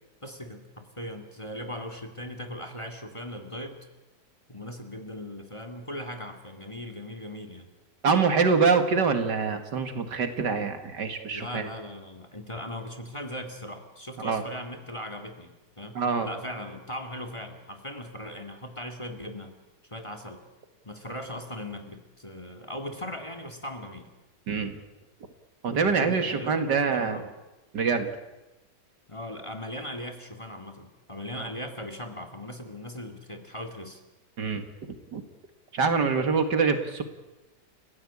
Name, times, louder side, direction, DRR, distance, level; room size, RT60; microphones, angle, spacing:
voice 1, 0.2-3.8 4.5-7.7 11.3-19.5 19.9-20.4 20.8-24.1 25.8-27.3 29.1-34.0, left 1 dB, 15° left, 6 dB, 2.2 m, -39 dB
voice 2, 8.0-11.6 14.2-14.4 16.0-16.3 24.5-24.8 25.6-27.2 27.7-28.1 31.4-31.5 34.4-34.6 35.1-35.2 35.7-37.0, right 5 dB, 70° right, 7 dB, 2.4 m, -25 dB
29.5 x 16.0 x 8.6 m, 1.1 s
omnidirectional pair, 1.9 m